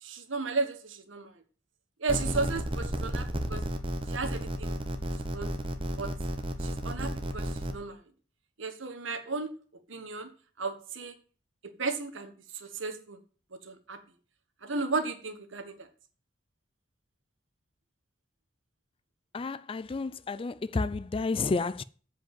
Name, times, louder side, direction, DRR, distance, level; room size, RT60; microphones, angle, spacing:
voice 1, 0.0-1.3 2.0-3.6 4.1-4.8 5.3-5.5 6.0-6.1 6.6-8.0 8.6-9.5 9.9-10.3 10.6-11.1 11.6-13.2 13.6-14.0 14.6-15.9, right 3 dB, 80° right, 1.5 m, -34 dB
sound 1, 2.1-7.7, right 1 dB, 30° right, 1.1 m, -33 dB
voice 2, 19.3-21.8, left 3 dB, 30° left, 0.3 m, -31 dB
7.8 x 5.2 x 7.6 m
head